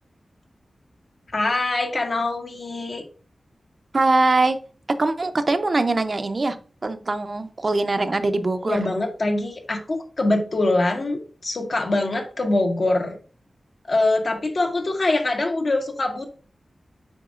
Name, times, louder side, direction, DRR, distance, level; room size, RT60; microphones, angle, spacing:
voice 1, 1.3-3.0 8.6-13.1 13.9-16.3, left 2 dB, 55° left, 1.6 m, -23 dB
voice 2, 3.9-4.6 5.0-6.6 6.8-8.8, right 2 dB, 45° right, 0.6 m, -22 dB
7.9 x 5.3 x 2.5 m
wide cardioid pair, 95°, 0 cm